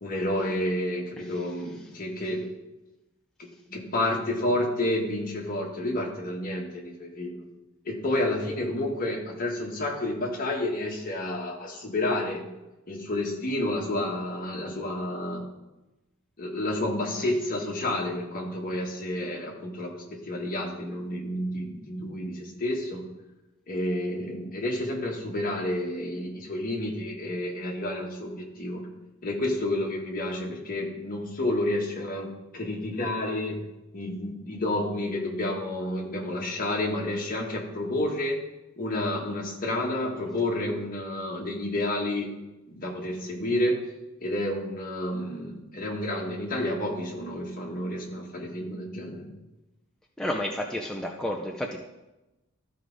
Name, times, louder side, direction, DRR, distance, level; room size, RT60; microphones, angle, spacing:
voice 1, 0.0-2.5 3.4-7.4 7.8-12.4 12.9-15.5 16.4-23.1 23.7-28.8 29.2-33.6 33.9-38.4 38.8-42.3 42.7-43.8 44.2-49.3, left 1 dB, 40° left, 0 dB, 1.5 m, -30 dB
voice 2, 50.2-51.8, left 1 dB, 5° left, -1 dB, 0.5 m, -31 dB
13.5 x 4.8 x 4.0 m, 1.0 s
head